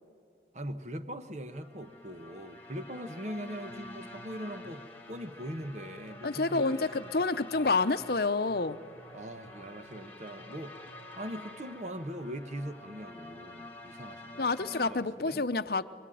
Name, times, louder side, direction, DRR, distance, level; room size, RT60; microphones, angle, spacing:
voice 1, 0.5-7.1 9.1-10.8 11.2-15.5, equal, 40° right, 1.2 m, -41 dB
sound 1, 1.4-14.9, left 2 dB, 10° left, 2.4 m, -48 dB
sound 2, 3.7-11.3, right 1 dB, 80° right, 4.5 m, -57 dB
voice 2, 6.2-8.8 14.4-15.8, left 3 dB, 55° left, 0.8 m, -28 dB
25.0 x 23.0 x 9.3 m
head